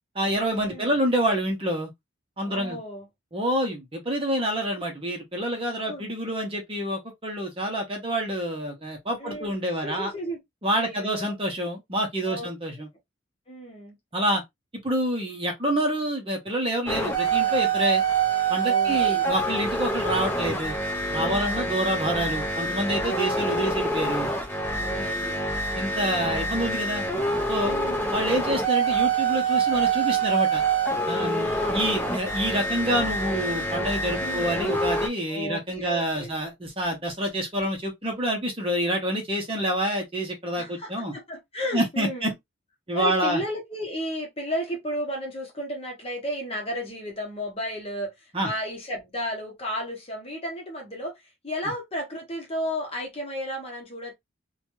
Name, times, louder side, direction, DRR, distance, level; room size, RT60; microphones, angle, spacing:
voice 1, 0.1-1.9 2.4-2.8 3.3-10.1 10.6-12.9 14.1-14.4 14.8-18.0 18.5-20.8 21.1-24.3 25.7-27.0 27.5-27.8 28.1-30.6 31.1-41.1 41.7-42.3 42.9-43.4 48.3-48.5, right 1 dB, 25° right, 0.8 m, -27 dB
voice 2, 2.4-3.1 5.8-6.0 9.2-9.6 9.8-10.4 10.7-11.4 12.2-12.5 13.5-14.0 18.6-19.3 21.1-21.7 23.3-23.8 24.7-25.4 27.6-28.2 31.1-31.9 34.2-34.5 35.3-36.3 40.6-42.3 42.9-54.1, equal, 30° left, 0.9 m, -34 dB
sound 1, 16.9-35.1, right 3 dB, 10° left, 0.6 m, -26 dB
2.7 x 2.3 x 3.0 m
head